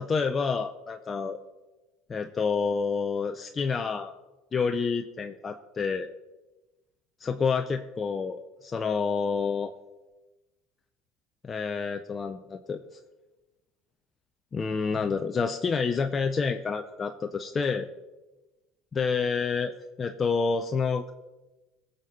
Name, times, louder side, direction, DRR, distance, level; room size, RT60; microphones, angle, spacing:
voice 1, 0.0-1.4 2.1-4.1 4.5-6.1 7.2-9.7 11.4-12.8 14.5-17.9 18.9-21.1, left 5 dB, 25° left, 6 dB, 0.6 m, -28 dB
16.5 x 6.6 x 5.4 m, 1.1 s
supercardioid pair, 110°, 0 cm